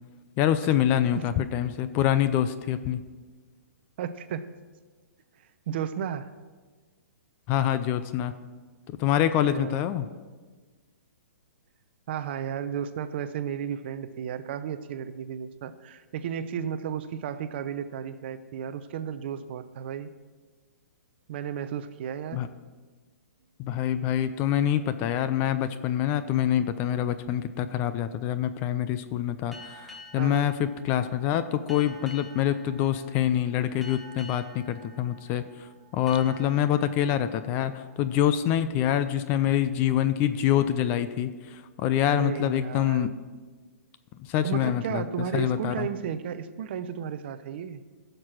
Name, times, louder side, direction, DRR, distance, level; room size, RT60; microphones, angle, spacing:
voice 1, 0.4-3.0 7.5-8.3 9.0-10.1 22.3-22.5 23.6-43.1 44.2-45.0 45.3-45.9, left 11 dB, 20° left, 12 dB, 0.4 m, -26 dB
voice 2, 4.0-4.5 5.4-6.3 9.4-9.8 12.1-20.1 21.3-22.4 30.2-30.5 42.1-43.1 44.4-47.8, right 8 dB, 45° right, 12 dB, 0.7 m, -33 dB
sound 1, 29.5-38.8, left 1 dB, ahead, 1.2 m, -49 dB
15.5 x 6.7 x 6.0 m, 1.4 s
hypercardioid pair, 160°, 8 cm